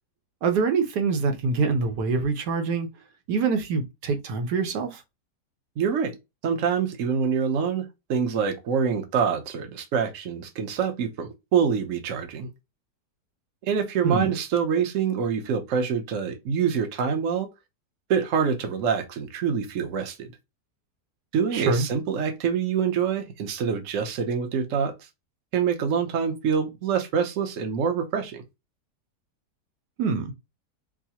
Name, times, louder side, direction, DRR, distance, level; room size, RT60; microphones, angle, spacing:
voice 1, 0.4-2.9 3.3-5.0 14.0-14.3 21.5-21.9 30.0-30.3, right 4 dB, 75° right, 1.3 m, -25 dB
voice 2, 5.8-6.2 6.4-12.5 13.6-17.5 18.1-20.3 21.3-25.1 25.5-28.4, right 7 dB, 60° right, 1.0 m, -26 dB
4.6 x 2.0 x 2.8 m
omnidirectional pair, 1.8 m